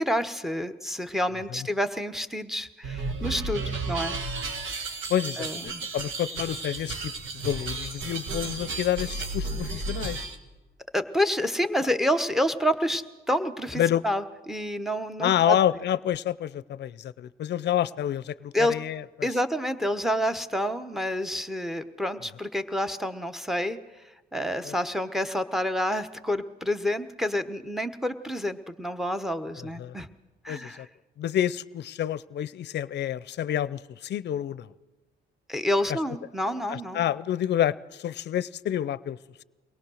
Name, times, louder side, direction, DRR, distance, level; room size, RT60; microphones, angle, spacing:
voice 1, 0.0-4.2 5.4-5.8 10.9-15.6 18.5-18.7 19.2-23.8 24.3-30.1 30.4-30.8 35.5-37.0, equal, ahead, 9 dB, 1.1 m, -28 dB
sound 1, 2.8-10.4, right 3 dB, 75° right, 1.8 m, -33 dB
voice 2, 5.1-10.3 13.7-14.0 15.2-19.3 24.6-24.7 29.6-30.0 30.5-30.9 31.2-34.7 35.9-36.0 36.7-39.2, left 11 dB, 60° left, 18 dB, 0.6 m, -28 dB
23.0 x 18.0 x 6.4 m, 1.2 s
cardioid pair, 90°, 20 cm